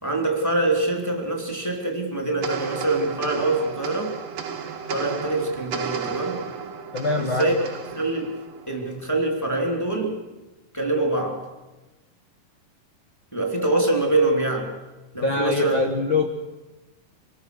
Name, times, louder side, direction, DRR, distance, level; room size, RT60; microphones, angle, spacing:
voice 1, 0.0-4.1 4.9-6.4 7.2-7.5 7.9-8.4 8.7-10.1 10.7-11.5 13.3-14.7 15.1-15.8, right 2 dB, 5° left, 1 dB, 2.8 m, -24 dB
sound 1, 2.4-9.1, right 7 dB, 55° right, 1.4 m, -34 dB
voice 2, 6.9-7.5 15.2-16.3, left 3 dB, 60° left, 3 dB, 1.3 m, -23 dB
26.5 x 19.5 x 6.4 m, 1.1 s
omnidirectional pair, 3.9 m